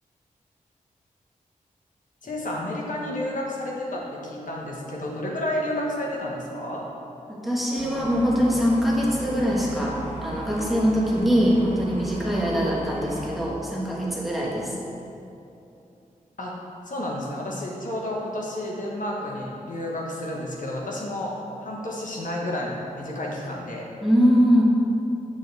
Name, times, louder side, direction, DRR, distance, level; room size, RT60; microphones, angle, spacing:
voice 1, 2.2-6.8 16.4-16.6 16.8-21.3 21.6-23.9, left 1 dB, 65° left, -2 dB, 1.2 m, -31 dB
voice 2, 7.3-14.8 24.0-24.6, equal, ahead, -5 dB, 1.5 m, -22 dB
sound 1, 7.8-13.4, right 2 dB, 80° right, 1.9 m, -37 dB
8.9 x 6.5 x 3.4 m, 2.8 s
wide cardioid pair, 85°, 14 cm